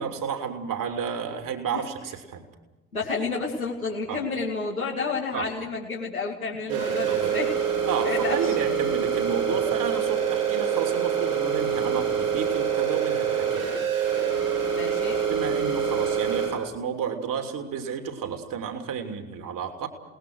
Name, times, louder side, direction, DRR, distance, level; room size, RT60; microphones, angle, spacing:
voice 1, 0.0-2.4 4.1-4.2 5.3-5.4 6.7-7.3 7.8-13.6 15.3-19.9, right 7 dB, 50° right, 5 dB, 3.1 m, -31 dB
voice 2, 2.9-7.5 8.0-8.5 14.7-15.2, left 4 dB, 85° left, -5 dB, 2.3 m, -30 dB
sound 1, 6.7-16.5, right 7 dB, 85° right, 7.1 m, -26 dB
29.0 x 19.5 x 6.4 m, 1.0 s
figure-of-eight pair, 50°, 42 cm